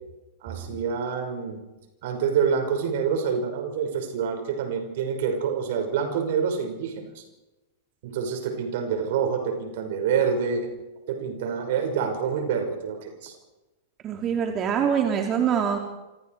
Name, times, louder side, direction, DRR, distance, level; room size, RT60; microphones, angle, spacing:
voice 1, 0.4-1.6 2.0-7.2 8.0-10.7 11.1-13.3, right 6 dB, 55° right, 6 dB, 5.8 m, -27 dB
voice 2, 14.0-15.8, right 7 dB, 30° right, 3 dB, 3.2 m, -24 dB
28.5 x 25.5 x 4.9 m, 1.1 s
figure-of-eight pair, 100°, 0 cm